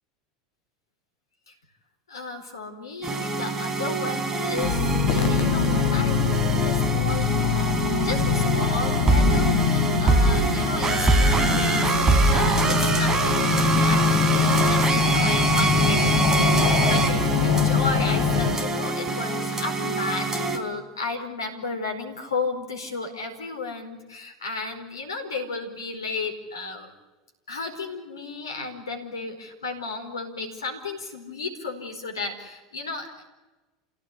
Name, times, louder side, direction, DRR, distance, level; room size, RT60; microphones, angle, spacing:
voice 1, 2.1-7.3 8.0-26.9 27.5-33.3, left 3 dB, 80° left, 4 dB, 4.7 m, -33 dB
sound 1, 3.0-20.6, right 3 dB, 25° right, 4.0 m, -24 dB
sound 2, 4.6-18.6, left 5 dB, 55° left, 3.7 m, -23 dB
29.0 x 17.0 x 10.0 m, 1.1 s
figure-of-eight pair, 80°, 2 cm